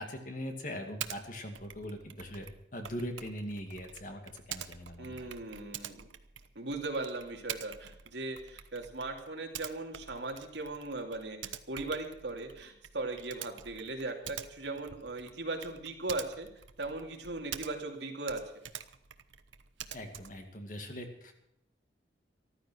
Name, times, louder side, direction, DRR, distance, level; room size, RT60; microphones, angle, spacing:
voice 1, 0.0-2.5 2.7-5.3 19.9-21.3, equal, 45° left, 4 dB, 2.3 m, -41 dB
Typing, 1.0-1.2 1.5-18.0 18.2-20.5, right 9 dB, 90° right, 0.9 m, -46 dB
voice 2, 5.0-6.1 6.5-16.5 16.8-18.4, right 2 dB, 70° right, 2 dB, 2.7 m, -38 dB
14.5 x 12.5 x 6.2 m, 0.79 s
head